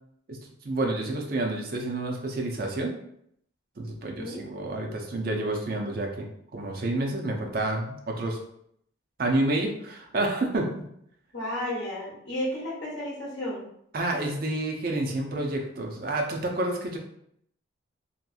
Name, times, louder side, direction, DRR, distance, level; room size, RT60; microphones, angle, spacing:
voice 1, 0.6-2.9 3.8-6.3 6.5-8.4 9.2-10.7 13.9-17.0, right 2 dB, 45° right, 1 dB, 0.5 m, -29 dB
voice 2, 11.3-13.7, left 1 dB, 60° left, -4 dB, 1.0 m, -33 dB
2.8 x 2.6 x 2.3 m, 0.71 s
head